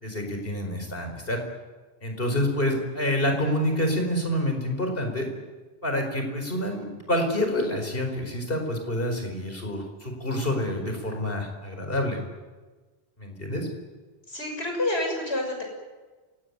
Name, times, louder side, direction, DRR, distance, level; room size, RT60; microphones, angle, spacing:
voice 1, 0.0-1.4 2.0-5.3 5.8-12.2 13.2-13.7, left 1 dB, 60° left, 4 dB, 4.9 m, -27 dB
voice 2, 14.3-15.6, left 1 dB, 85° left, 2 dB, 6.8 m, -28 dB
27.5 x 18.0 x 9.7 m, 1.3 s
omnidirectional pair, 1.1 m